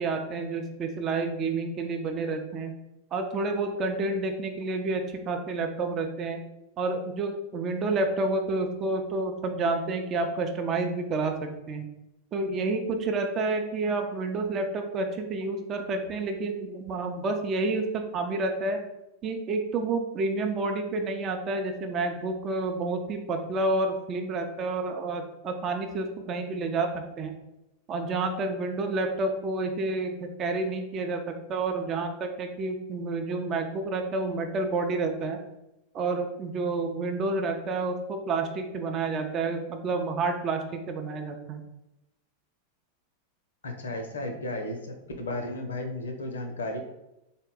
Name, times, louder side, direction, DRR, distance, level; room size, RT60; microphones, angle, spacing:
voice 1, 0.0-2.7 3.1-6.4 6.8-11.9 12.3-18.8 19.2-27.3 27.9-31.2 31.5-35.4 35.9-41.6, right 3 dB, 30° right, 4 dB, 0.4 m, -29 dB
voice 2, 43.6-46.8, left 1 dB, 65° left, 5 dB, 0.6 m, -34 dB
3.9 x 2.1 x 3.9 m, 0.90 s
figure-of-eight pair, 90°, 0 cm